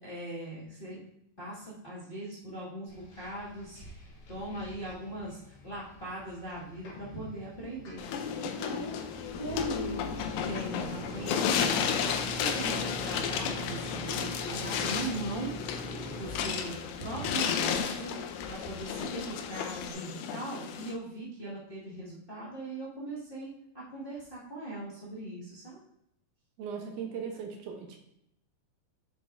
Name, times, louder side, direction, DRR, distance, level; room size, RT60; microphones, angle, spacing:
voice 1, 0.0-1.0 1.4-3.8 4.3-8.1 8.3-9.0 9.4-10.0 10.4-15.5 16.1-18.1 18.5-25.8, right 2 dB, 20° left, -9 dB, 1.6 m, -40 dB
sound 1, 2.9-19.9, equal, 55° left, 1.5 m, -45 dB
sound 2, 8.0-20.9, left 7 dB, 75° left, 1.9 m, -33 dB
voice 2, 26.6-28.0, right 6 dB, 75° right, 2 dB, 2.3 m, -38 dB
7.4 x 6.8 x 2.6 m, 0.78 s
omnidirectional pair, 3.8 m